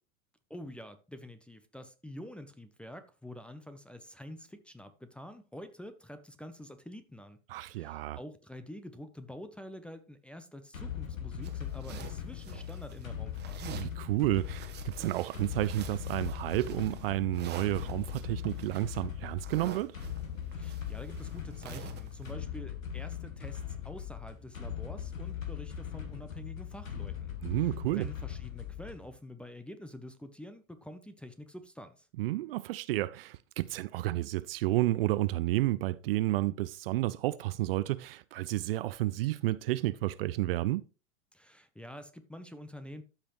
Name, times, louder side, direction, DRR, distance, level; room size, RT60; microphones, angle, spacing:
voice 1, 0.5-13.6 20.5-32.1 41.3-43.0, left 1 dB, 5° left, 0.6 m, -47 dB
voice 2, 7.5-8.2 13.7-20.0 27.4-28.1 32.2-40.8, right 17 dB, 45° right, 0.5 m, -31 dB
sound 1, 10.7-29.1, left 9 dB, 75° left, 2.0 m, -40 dB
sound 2, 11.4-13.1 13.4-14.0 14.4-22.3, right 9 dB, 25° right, 1.3 m, -48 dB
13.5 x 5.8 x 3.0 m
figure-of-eight pair, 100°, 40 cm